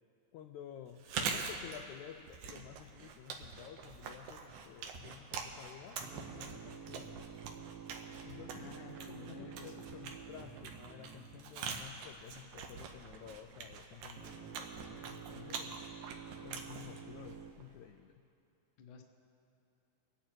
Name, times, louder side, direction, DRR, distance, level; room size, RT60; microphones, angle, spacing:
voice 1, 0.3-7.2 8.2-15.8 16.4-18.2, left 10 dB, 80° left, 6 dB, 1.7 m, -52 dB
Chewing mastication, 0.9-17.8, right 5 dB, 70° right, 2.2 m, -45 dB
sound 1, 3.4-4.0 4.8-5.4 6.4-6.8 7.2-7.3 8.2-8.9 9.7-10.4, equal, 50° right, 3.0 m, -58 dB
sound 2, 6.0-12.3 14.2-17.5, right 8 dB, 90° right, 2.4 m, -50 dB
voice 2, 8.5-9.9 18.8-19.0, left 5 dB, 60° left, 3 dB, 1.4 m, -52 dB
25.5 x 9.4 x 4.5 m, 2.6 s
omnidirectional pair, 3.9 m